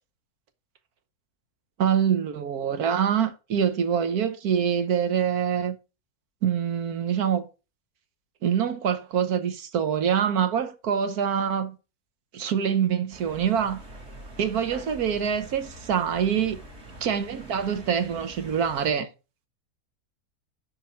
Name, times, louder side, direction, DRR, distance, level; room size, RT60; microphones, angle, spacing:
voice 1, 1.8-5.8 6.4-7.5 8.4-11.8 12.3-13.8 14.4-16.6 17.0-19.1, right 8 dB, 75° right, 1.5 m, -25 dB
sound 1, 13.1-18.9, right 1 dB, 45° right, 2.3 m, -45 dB
9.5 x 5.1 x 4.5 m
omnidirectional pair, 1.6 m